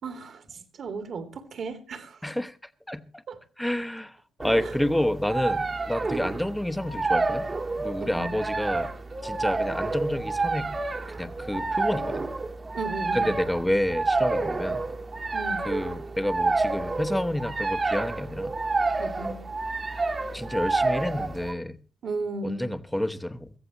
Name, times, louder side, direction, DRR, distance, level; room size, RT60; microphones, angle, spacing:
voice 1, 0.0-2.2 3.3-3.4 8.0-8.4 12.7-13.3 15.3-15.7 19.0-19.5 22.0-22.7, right 3 dB, 55° right, 2.4 m, -35 dB
voice 2, 2.2-2.6 2.9-3.2 3.6-7.5 7.8-8.9 9.2-10.7 11.1-12.3 13.1-14.8 15.6-18.5 20.3-21.8 22.4-23.5, left 1 dB, 5° left, 1.1 m, -29 dB
sound 1, 4.4-21.5, right 3 dB, 30° right, 1.6 m, -29 dB
23.0 x 15.0 x 3.0 m
cardioid pair, 90°, 0 cm